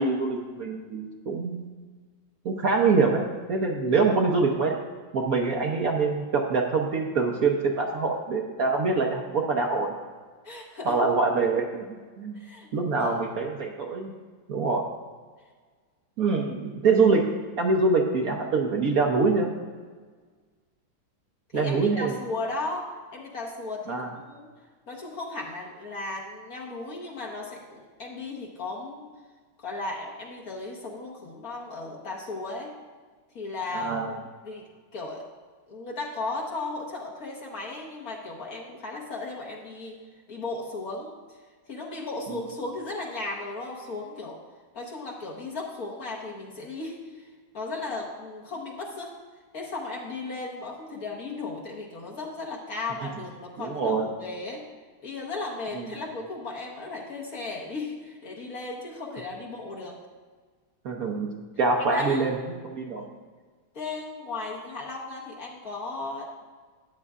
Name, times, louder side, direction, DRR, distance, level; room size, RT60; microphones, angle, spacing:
voice 1, 0.0-1.6 2.4-4.8 5.1-10.0 10.9-12.4 12.7-14.1 14.5-14.8 16.2-17.2 17.6-19.5 21.5-22.2 23.9-24.1 33.7-34.1 53.6-54.1 60.8-61.3 61.6-62.4 62.6-63.0, right 4 dB, 60° right, 0 dB, 1.1 m, -24 dB
voice 2, 10.4-11.0 12.3-13.2 21.5-22.9 23.1-24.5 24.9-29.1 29.6-32.7 33.3-34.1 34.4-35.3 35.7-39.9 40.3-41.4 41.7-44.4 44.7-49.2 49.5-54.7 55.0-60.0 61.9-62.3 62.8-63.2 63.7-66.4, left 3 dB, 50° left, -2 dB, 1.6 m, -36 dB
13.5 x 9.7 x 2.4 m, 1.5 s
omnidirectional pair, 2.1 m